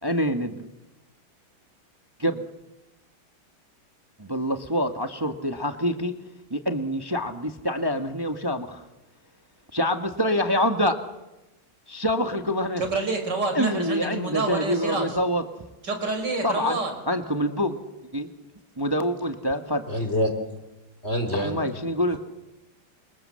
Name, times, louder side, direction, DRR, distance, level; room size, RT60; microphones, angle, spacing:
voice 1, 0.0-0.7 2.2-2.4 4.2-6.1 6.5-8.9 9.7-10.9 11.9-12.8 13.5-15.4 16.4-16.8 17.1-17.8 18.1-18.3 18.8-19.8 21.3-22.2, equal, 15° right, 7 dB, 1.3 m, -26 dB
voice 2, 12.8-15.2 15.8-16.9, right 3 dB, 55° right, 6 dB, 5.2 m, -28 dB
voice 3, 19.9-20.3 21.0-21.6, equal, 30° left, 7 dB, 3.8 m, -25 dB
29.0 x 26.5 x 7.7 m, 0.99 s
omnidirectional pair, 2.2 m